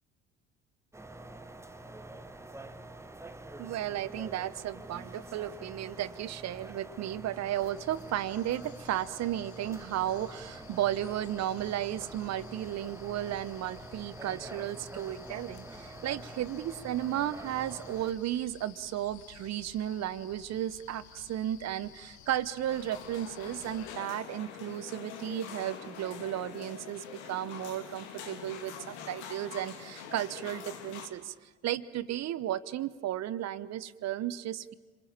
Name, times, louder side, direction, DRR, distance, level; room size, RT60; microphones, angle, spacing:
sound 1, 0.9-18.1, right 2 dB, 10° right, 1.4 m, -47 dB
voice 1, 3.6-31.3 31.6-34.7, right 12 dB, 50° right, 17 dB, 1.0 m, -34 dB
sound 2, 7.5-24.0, left 11 dB, 55° left, 1.4 m, -54 dB
sound 3, 22.7-31.1, left 7 dB, 75° left, 2.8 m, -45 dB
27.0 x 21.5 x 8.8 m, 1.3 s
hypercardioid pair, 60°, 34 cm